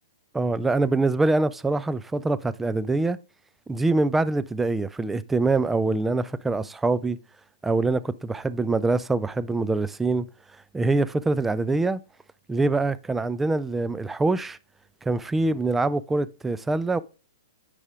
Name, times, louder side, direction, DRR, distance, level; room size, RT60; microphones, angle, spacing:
voice 1, 0.3-3.2 3.7-7.2 7.6-10.3 10.7-12.0 12.5-14.6 15.0-17.0, right 3 dB, 10° right, 0.3 m, -24 dB
9.3 x 4.9 x 3.6 m
hypercardioid pair, 120°, 2 cm